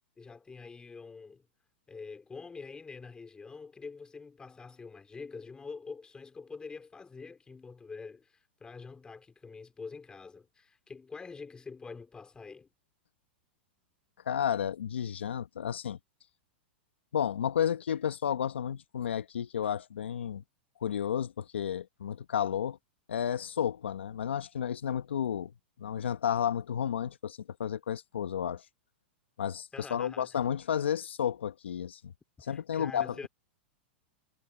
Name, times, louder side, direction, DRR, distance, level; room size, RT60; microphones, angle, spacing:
voice 1, 0.0-1.5 1.9-12.7 29.7-30.4 32.4-33.3, left 4 dB, 15° left, 3.7 m, -46 dB
voice 2, 14.2-16.0 17.1-20.4 20.8-22.8 23.1-25.5 25.8-28.6 29.4-32.1 32.4-33.3, left 9 dB, 85° left, 0.9 m, -32 dB
hypercardioid pair, 115°, 6 cm